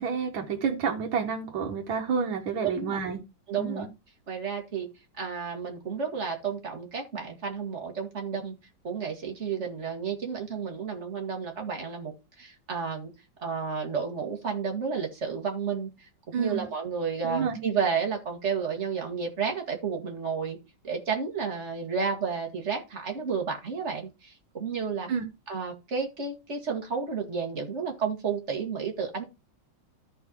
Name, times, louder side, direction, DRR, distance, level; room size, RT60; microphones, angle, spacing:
voice 1, 0.0-3.2 3.6-3.9 16.3-16.7 17.2-17.6 25.1-25.3, right 6 dB, 85° right, 1 dB, 1.9 m, -29 dB
voice 2, 2.6-3.0 3.5-3.9 4.3-4.9 5.2-8.5 8.8-13.1 13.4-15.9 16.4-20.6 20.8-25.1 25.5-29.2, right 6 dB, 35° right, 1 dB, 2.1 m, -31 dB
13.5 x 5.4 x 2.9 m, 0.25 s
omnidirectional pair, 2.1 m